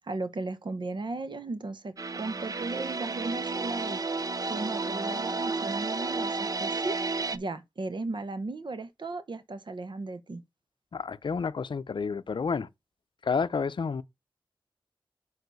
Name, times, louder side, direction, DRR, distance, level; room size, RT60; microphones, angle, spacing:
voice 1, 0.1-4.0 4.5-7.0 7.3-10.4, right 2 dB, 55° right, 1.0 m, -36 dB
sound 1, 2.0-7.4, right 3 dB, 40° right, 0.6 m, -32 dB
voice 2, 10.9-12.7 13.2-14.0, left 5 dB, 60° left, 0.6 m, -30 dB
6.6 x 4.8 x 4.0 m
wide cardioid pair, 65°, 9 cm